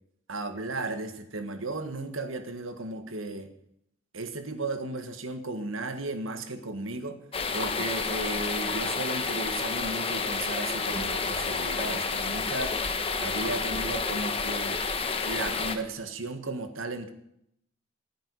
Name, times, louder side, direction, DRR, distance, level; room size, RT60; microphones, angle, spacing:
voice 1, 0.3-3.5 4.1-7.2 7.5-12.8 13.2-14.8 15.2-17.1, right 2 dB, 85° right, 8 dB, 1.7 m, -35 dB
sound 1, 7.3-15.8, left 4 dB, 25° left, 1.2 m, -30 dB
15.0 x 9.1 x 9.8 m, 0.76 s
head